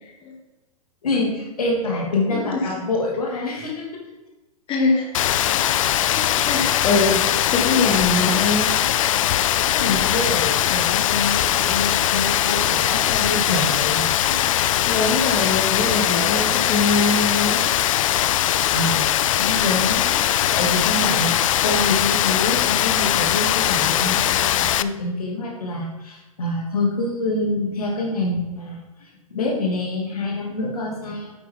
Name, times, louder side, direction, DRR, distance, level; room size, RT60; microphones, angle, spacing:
voice 1, 0.0-0.4 1.9-2.0 2.3-2.7 3.3-3.4 4.7-5.1 6.1-8.7 14.9-17.6 21.1-21.3, left 3 dB, 30° left, 1 dB, 1.5 m, -23 dB
voice 2, 1.0-3.9 9.7-14.4 18.7-19.0 19.3-31.4, left 2 dB, 75° left, -1 dB, 2.7 m, -26 dB
Rain, 5.1-24.8, left 12 dB, 60° left, 0.4 m, -20 dB
8.9 x 8.2 x 3.8 m, 1.1 s
hypercardioid pair, 110°, 19 cm